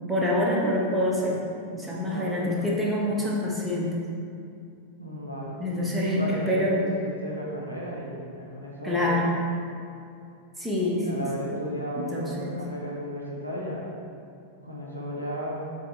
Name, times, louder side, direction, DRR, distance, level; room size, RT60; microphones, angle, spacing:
voice 1, 0.1-1.4 1.7-4.0 5.6-6.8 8.8-9.3 10.6-11.2 11.9-12.6, left 1 dB, 5° right, -5 dB, 1.2 m, -26 dB
voice 2, 2.1-2.7 5.0-5.6 6.0-9.2 11.0-13.9 14.6-15.6, equal, 90° left, -5 dB, 1.1 m, -34 dB
7.3 x 3.8 x 3.4 m, 2.5 s
figure-of-eight pair, 90°, 0 cm